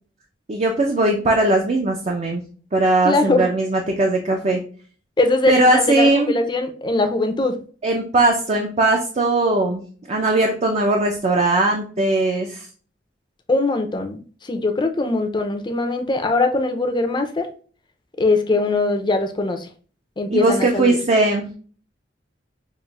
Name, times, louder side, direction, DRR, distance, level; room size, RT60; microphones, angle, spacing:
voice 1, 0.5-2.4 2.7-4.6 5.5-6.3 7.8-9.8 10.1-12.7 20.3-21.4, right 2 dB, 40° right, 2 dB, 0.5 m, -19 dB
voice 2, 3.0-3.5 5.2-7.6 13.5-17.5 18.2-19.7 20.2-21.0, left 2 dB, 25° left, 5 dB, 0.5 m, -21 dB
5.5 x 2.5 x 2.4 m, 0.41 s
head